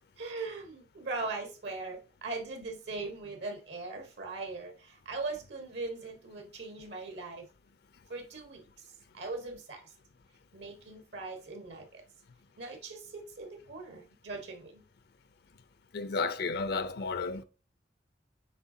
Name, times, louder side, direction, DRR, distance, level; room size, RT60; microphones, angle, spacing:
voice 1, 0.2-7.5 8.1-9.9 10.5-12.0 12.6-14.8, right 3 dB, 80° right, 1.5 m, -40 dB
voice 2, 15.9-17.4, left 4 dB, 65° left, 0.5 m, -32 dB
7.2 x 4.9 x 2.7 m
head